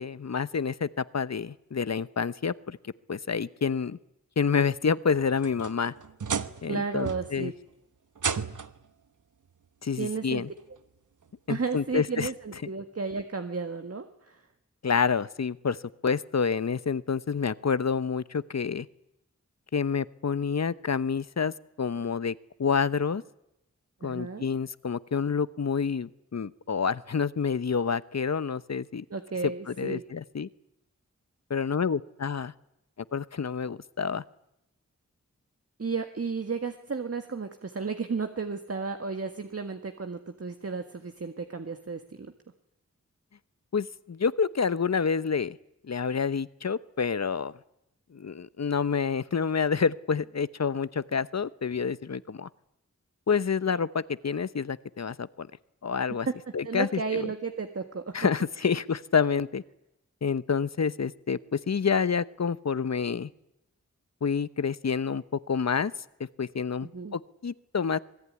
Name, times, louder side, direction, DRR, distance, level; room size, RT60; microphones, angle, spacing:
voice 1, 0.0-4.0 4.4-5.9 6.6-7.5 9.8-10.5 11.5-12.3 14.8-15.8 16.0-18.9 19.7-22.3 22.6-23.2 24.0-29.0 29.7-30.5 31.5-32.5 33.1-34.2 43.7-45.6 45.8-47.5 48.1-52.5 53.3-55.5 55.8-56.3 56.5-57.3 58.1-59.6 60.2-63.3 64.2-65.9 66.2-68.0, left 6 dB, 60° left, 16 dB, 0.9 m, -28 dB
sound 1, 5.1-6.7 7.0-7.5 8.2-8.9 10.0-10.1 10.8-10.9 12.4-12.5, right 6 dB, 80° right, 1.2 m, -33 dB
voice 2, 6.7-7.5 10.0-10.4 11.5-14.4 24.0-24.5 29.1-30.0 35.8-42.3 56.6-58.2 66.8-67.2, right 4 dB, 50° right, 7 dB, 1.7 m, -33 dB
26.5 x 21.0 x 9.7 m, 0.84 s
wide cardioid pair, 90°, 30 cm